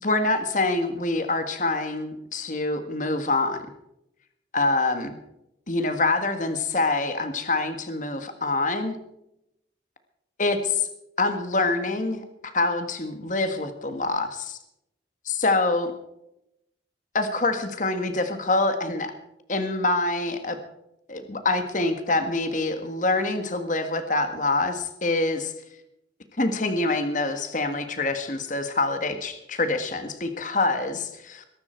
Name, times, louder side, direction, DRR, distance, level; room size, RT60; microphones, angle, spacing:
voice 1, 0.0-3.6 4.5-5.2 5.7-8.9 10.4-10.9 11.2-14.6 15.2-15.9 17.1-19.1 19.5-20.6 21.1-25.5 26.4-31.4, left 2 dB, 45° left, 8 dB, 1.7 m, -25 dB
22.0 x 12.0 x 4.5 m, 0.82 s
head